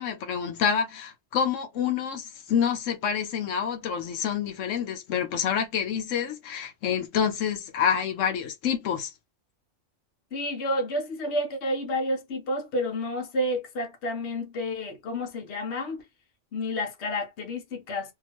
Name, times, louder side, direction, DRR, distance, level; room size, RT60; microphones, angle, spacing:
voice 1, 0.0-9.1, left 7 dB, 85° left, 1.0 m, -27 dB
voice 2, 10.3-16.0 16.5-18.1, left 1 dB, 65° left, 1.1 m, -30 dB
2.8 x 2.3 x 2.9 m
omnidirectional pair, 1.3 m